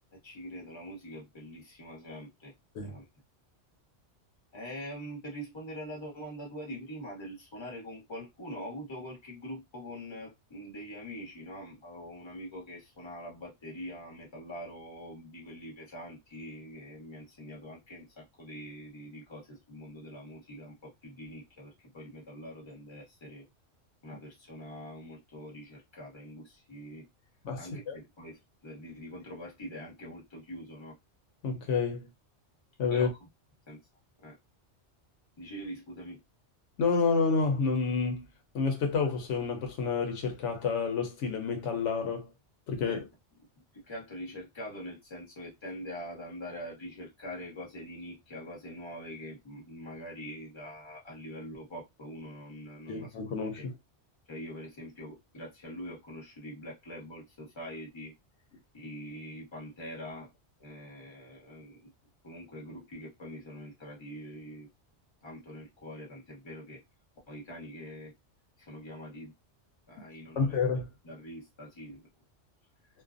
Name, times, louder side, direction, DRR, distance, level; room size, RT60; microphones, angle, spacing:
voice 1, 0.1-2.5 2.8-3.0 4.5-23.5 24.0-27.1 27.6-30.9 32.9-33.3 33.7-33.8 34.2-34.4 35.4-36.2 42.8-43.1 43.7-53.1 53.5-53.7 54.3-58.1 58.7-60.3 60.6-61.9 62.2-64.7 65.2-66.8 67.3-68.1 68.6-69.3 69.9-70.6 71.0-72.1, equal, 25° left, 1.1 m, -44 dB
voice 2, 31.4-32.0 32.8-33.1 36.8-38.3 38.5-42.3 42.7-43.0 52.9-53.7 70.4-70.9, left 5 dB, 90° left, 1.0 m, -29 dB
2.5 x 2.2 x 2.4 m
omnidirectional pair, 1.2 m